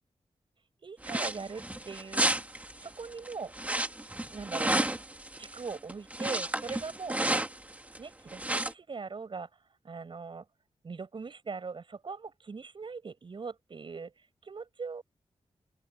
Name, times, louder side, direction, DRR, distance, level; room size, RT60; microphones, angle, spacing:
voice 1, 0.8-2.3 2.8-3.5 4.3-4.7 5.4-7.2 8.0-9.5 9.8-10.4 10.8-14.1 14.4-15.0, right 4 dB, 50° right, 7.1 m, -40 dB
sound 1, 1.0-8.0 8.3-8.7, right 1 dB, 15° right, 1.7 m, -32 dB
open air
wide cardioid pair, 125°, 11 cm